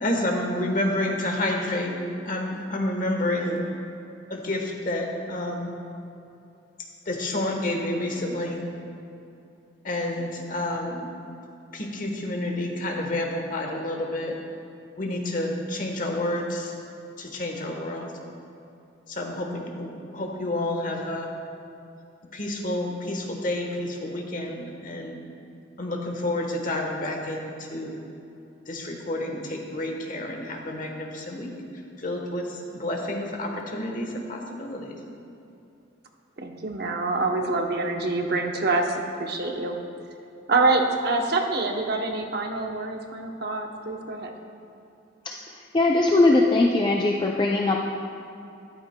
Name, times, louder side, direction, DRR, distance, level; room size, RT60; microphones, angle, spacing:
voice 1, 0.0-1.9 2.2-3.6 4.3-5.8 7.0-8.6 9.8-11.1 11.7-14.3 15.0-16.7 17.2-18.1 19.1-21.3 22.3-25.2 25.8-28.0 28.7-31.5 32.0-35.0, left 1 dB, 45° left, 1 dB, 1.1 m, -29 dB
voice 2, 36.4-39.8 40.5-44.3, right 3 dB, 55° right, 3 dB, 0.8 m, -26 dB
voice 3, 45.7-47.8, left 2 dB, 25° left, 1 dB, 0.3 m, -20 dB
13.0 x 11.5 x 2.2 m, 2.7 s
head